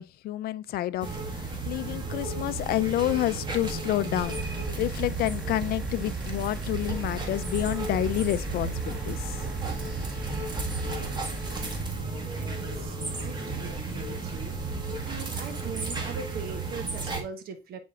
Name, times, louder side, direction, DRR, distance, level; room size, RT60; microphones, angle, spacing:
voice 1, 0.0-9.4, left 14 dB, 65° left, 0.4 m, -29 dB
sound 1, 1.0-17.2, right 3 dB, 25° right, 1.7 m, -33 dB
sound 2, 4.2-11.8, right 2 dB, ahead, 1.0 m, -39 dB
voice 2, 12.2-14.6 15.0-17.8, right 6 dB, 65° right, 1.2 m, -41 dB
9.2 x 4.3 x 2.4 m
cardioid pair, 110°, 17 cm